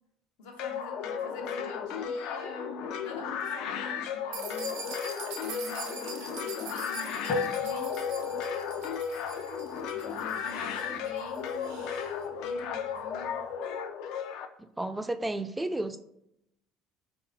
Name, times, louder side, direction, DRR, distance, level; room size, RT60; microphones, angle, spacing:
voice 1, 0.4-4.8 5.4-8.0 9.9-11.8 12.4-13.4, left 2 dB, 90° left, 1 dB, 1.0 m, -45 dB
sound 1, 0.6-14.5, left 7 dB, 70° left, 0.4 m, -35 dB
sound 2, 4.3-12.1, right 5 dB, 85° right, 0.6 m, -44 dB
sound 3, 7.3-11.9, left 4 dB, 50° left, 1.0 m, -37 dB
voice 2, 14.6-16.0, right 1 dB, 10° right, 9 dB, 0.3 m, -32 dB
3.3 x 2.8 x 4.0 m, 0.78 s
supercardioid pair, 100°, 0 cm